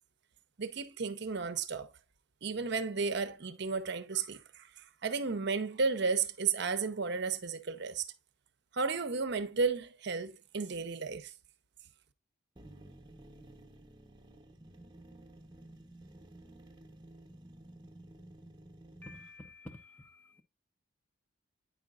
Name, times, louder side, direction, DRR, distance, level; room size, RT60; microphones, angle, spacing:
voice 1, 0.6-1.9 2.4-8.1 8.7-11.3, right 5 dB, 55° right, 0.7 m, -33 dB
sound 1, 12.6-19.3, right 1 dB, 20° right, 0.9 m, -53 dB
voice 2, 19.0-20.4, left 2 dB, 10° left, 0.6 m, -50 dB
9.1 x 5.0 x 2.4 m
head